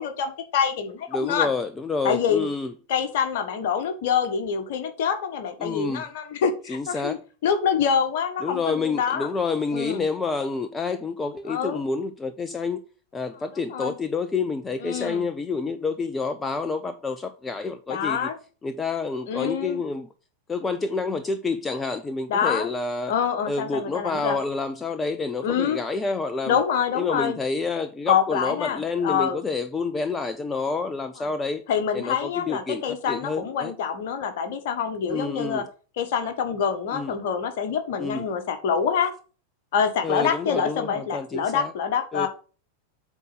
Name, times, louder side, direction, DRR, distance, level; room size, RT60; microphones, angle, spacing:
voice 1, 0.0-1.5 2.0-2.5 2.9-7.2 7.4-9.3 9.7-10.0 11.5-11.8 13.6-13.9 14.8-15.2 17.9-18.4 19.3-19.8 22.3-22.7 23.1-24.4 25.4-25.8 26.5-27.4 28.1-29.4 31.2-31.3 31.7-35.6 36.0-39.1 39.7-42.3, left 7 dB, 50° left, 1.5 m, -26 dB
voice 2, 1.1-2.7 5.6-6.0 6.7-7.2 8.4-12.8 13.1-18.3 18.6-20.1 20.5-23.1 23.5-26.6 26.9-31.6 31.9-33.7 35.1-35.6 36.9-37.1 38.0-38.2 40.0-41.7 42.1-42.3, left 4 dB, 15° left, 0.6 m, -28 dB
8.1 x 4.2 x 6.8 m
figure-of-eight pair, 90°, 0 cm